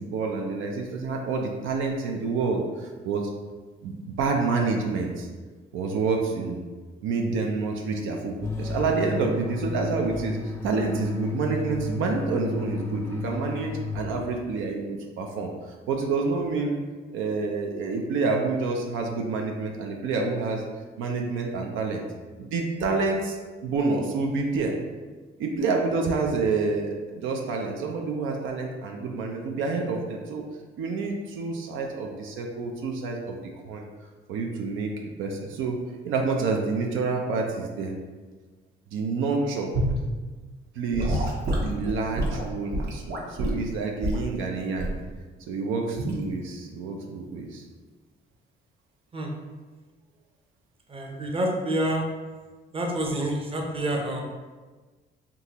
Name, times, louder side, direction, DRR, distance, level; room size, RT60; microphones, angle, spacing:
voice 1, 0.0-3.3 3.8-5.3 5.7-6.6 7.0-16.8 17.1-20.6 21.0-22.0 22.4-24.7 25.4-30.4 30.8-33.4 33.7-33.8 34.3-34.9 35.2-35.8 36.0-37.9 38.9-39.7 40.7-41.3 41.6-45.0 45.5-47.6, right 4 dB, 85° right, 1 dB, 0.5 m, -28 dB
sound 1, 8.4-14.5, left 3 dB, 15° left, 0.4 m, -33 dB
Gurgling / Sink (filling or washing) / Liquid, 39.7-40.0 40.9-43.6 44.0-44.3 44.8-45.0 46.0-46.2, right 1 dB, 55° right, 0.9 m, -27 dB
voice 2, 50.9-52.0 52.7-54.2, right 1 dB, 25° right, 0 dB, 0.7 m, -27 dB
3.7 x 2.8 x 2.9 m, 1.3 s
cardioid pair, 90°, 20 cm